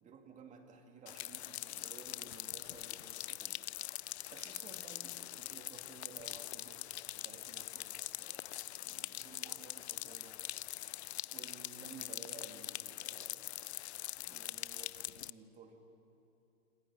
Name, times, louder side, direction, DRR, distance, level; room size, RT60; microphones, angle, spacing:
voice 1, 0.0-3.7 4.3-10.5 11.3-13.6 14.2-15.8, right 4 dB, 15° right, 4 dB, 2.4 m, -55 dB
sound 1, 1.1-15.3, left 14 dB, 50° left, 0.5 m, -43 dB
27.0 x 26.0 x 6.2 m, 2.7 s
hypercardioid pair, 140°, 43 cm